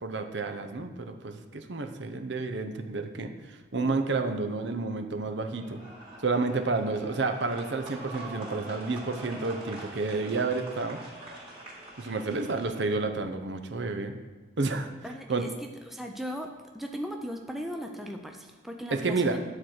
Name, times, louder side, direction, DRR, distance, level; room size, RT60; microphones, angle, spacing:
voice 1, 0.0-3.3 3.7-5.8 6.2-11.0 12.0-14.1 14.6-15.5 18.9-19.4, right 3 dB, 60° right, 7 dB, 0.7 m, -30 dB
sound 1, 5.6-13.0, right 2 dB, 25° right, 2.2 m, -44 dB
voice 2, 15.0-16.5 16.7-19.4, equal, ahead, 2 dB, 0.5 m, -37 dB
9.5 x 4.5 x 6.4 m, 1.3 s
head